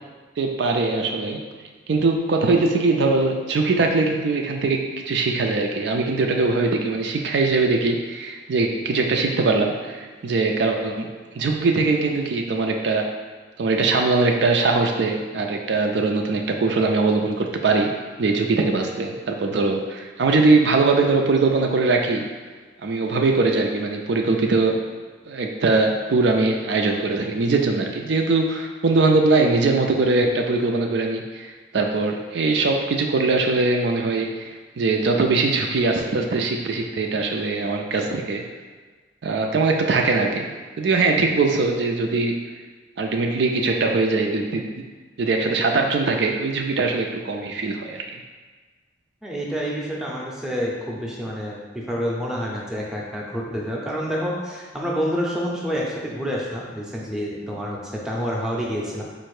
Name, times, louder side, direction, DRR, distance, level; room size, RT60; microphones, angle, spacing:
voice 1, 0.4-1.4 1.9-13.1 13.6-17.9 18.2-22.3 22.8-24.8 25.3-38.4 39.2-40.5 40.8-42.4 43.0-44.8 45.2-48.0, right 3 dB, 60° right, 2 dB, 0.4 m, -21 dB
voice 2, 49.2-59.0, equal, 5° right, -4 dB, 0.6 m, -28 dB
4.3 x 2.6 x 4.7 m, 1.4 s
head